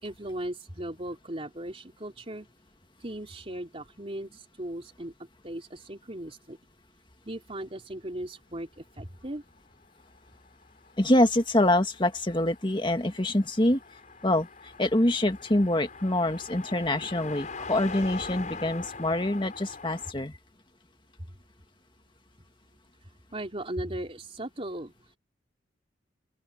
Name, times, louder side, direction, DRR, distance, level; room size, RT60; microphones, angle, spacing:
voice 1, 0.0-2.5 3.0-5.1 5.4-6.6 7.2-9.4 23.3-24.9, right 1 dB, 35° right, 3.8 m, -37 dB
Car passing by, 10.0-20.1, left 4 dB, 45° left, 6.2 m, -43 dB
voice 2, 11.0-13.8 14.2-20.4, left 1 dB, 25° left, 1.9 m, -25 dB
open air
head